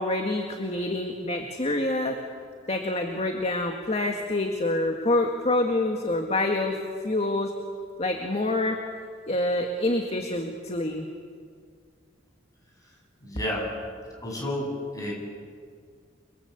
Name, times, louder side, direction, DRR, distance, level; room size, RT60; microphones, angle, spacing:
voice 1, 0.0-2.2 2.7-6.7 7.0-7.5 8.0-8.8 9.3-11.1, left 2 dB, 35° left, 3 dB, 2.0 m, -26 dB
voice 2, 13.2-13.7 14.2-15.1, left 1 dB, 20° left, -1 dB, 8.0 m, -31 dB
29.5 x 23.5 x 8.3 m, 2.1 s
head